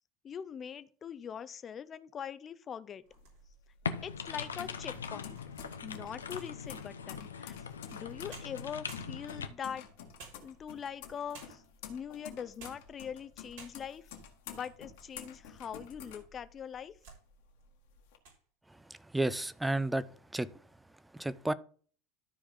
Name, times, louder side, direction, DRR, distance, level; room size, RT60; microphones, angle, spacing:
voice 1, 0.2-3.0 4.0-5.4 5.8-7.6 7.9-9.9 10.4-11.6 11.9-14.1 14.5-17.0, left 8 dB, 35° left, 0.7 m, -42 dB
sound 1, 3.0-3.7 4.3-4.4 5.0-6.7 7.9-8.0 8.3-9.5 10.2-10.9 11.3-11.8 12.4-13.0 13.2-13.3 13.5-14.1 14.7-15.5 15.8-15.9 16.6-17.3 17.6-17.8 18.1-18.4, right 4 dB, 65° right, 3.8 m, -54 dB
sound 2, 3.1-16.9 17.3-18.2, left 8 dB, 70° left, 1.9 m, -50 dB
sound 3, 3.8-9.5, left 6 dB, 85° left, 0.8 m, -41 dB
voice 2, 19.1-20.1 20.3-20.5 21.1-21.5, right 1 dB, 10° right, 0.6 m, -31 dB
13.0 x 4.7 x 3.6 m
hypercardioid pair, 80°, 0 cm